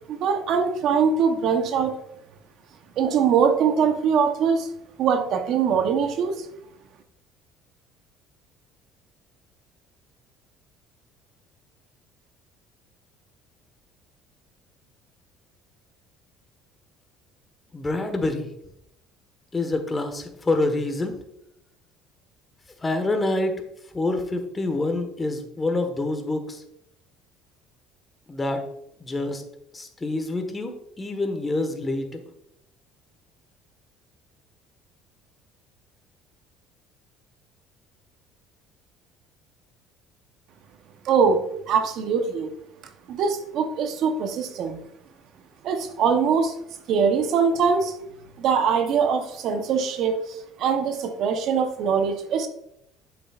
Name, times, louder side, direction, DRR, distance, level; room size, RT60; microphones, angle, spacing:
voice 1, 0.1-2.0 3.0-4.7 5.0-6.5 41.0-42.5 43.1-44.8 45.6-46.5 46.9-47.9 48.4-52.5, right 6 dB, 60° right, 6 dB, 0.9 m, -22 dB
voice 2, 17.7-18.5 19.5-21.1 22.8-23.5 23.9-26.6 28.3-28.6 29.0-29.4 29.7-30.7 31.0-32.2, left 2 dB, 20° left, 5 dB, 1.3 m, -26 dB
7.7 x 7.0 x 2.4 m, 0.78 s
supercardioid pair, 80°, 0 cm